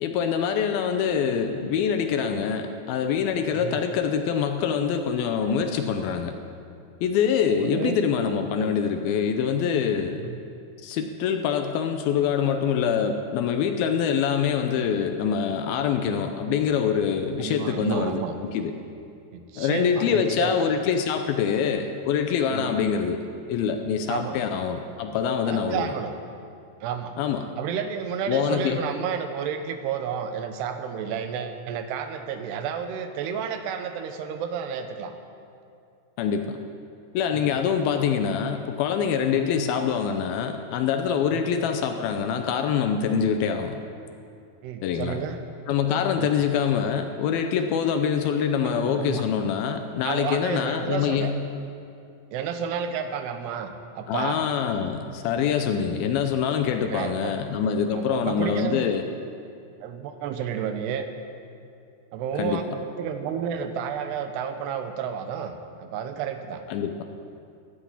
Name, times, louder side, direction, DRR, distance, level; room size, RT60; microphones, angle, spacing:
voice 1, 0.0-6.4 7.0-10.2 10.8-18.7 19.6-23.2 23.5-25.9 27.2-27.5 28.3-28.8 36.2-36.6 37.1-43.8 44.8-45.2 45.7-51.4 54.1-59.0 62.4-62.6 66.7-67.0, left 7 dB, 80° left, 6 dB, 2.3 m, -25 dB
voice 2, 7.6-8.0 8.6-8.7 10.2-10.4 17.4-18.4 19.3-20.6 22.5-22.8 24.1-24.4 25.5-26.2 26.8-27.2 27.6-35.1 37.3-37.5 39.3-39.5 41.3-41.5 44.6-45.4 46.2-46.3 48.6-49.2 50.0-51.3 52.3-54.4 56.7-57.3 57.9-58.8 59.8-61.1 62.1-65.5 65.8-66.6, right 7 dB, 90° right, 7 dB, 2.9 m, -31 dB
13.5 x 9.3 x 8.7 m, 2.5 s
omnidirectional pair, 4.8 m